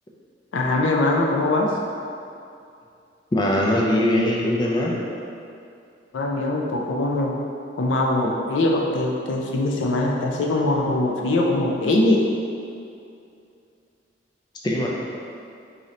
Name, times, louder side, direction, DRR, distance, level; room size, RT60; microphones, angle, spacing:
voice 1, 0.5-1.7 6.1-7.3 7.8-12.2, left 2 dB, 85° left, 0 dB, 0.5 m, -22 dB
voice 2, 3.3-4.9 14.6-14.9, left 1 dB, 25° left, -3 dB, 0.4 m, -21 dB
3.8 x 2.7 x 3.1 m, 2.5 s
head